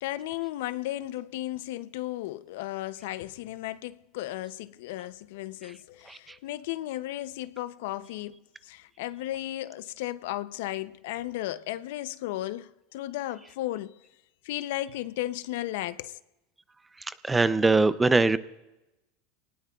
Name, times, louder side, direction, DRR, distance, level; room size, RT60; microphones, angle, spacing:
voice 1, 0.0-14.0 14.4-16.2, left 15 dB, 75° left, 0.5 m, -35 dB
voice 2, 17.2-18.4, right 3 dB, 10° right, 0.5 m, -22 dB
23.5 x 19.0 x 2.3 m
supercardioid pair, 125°, 0 cm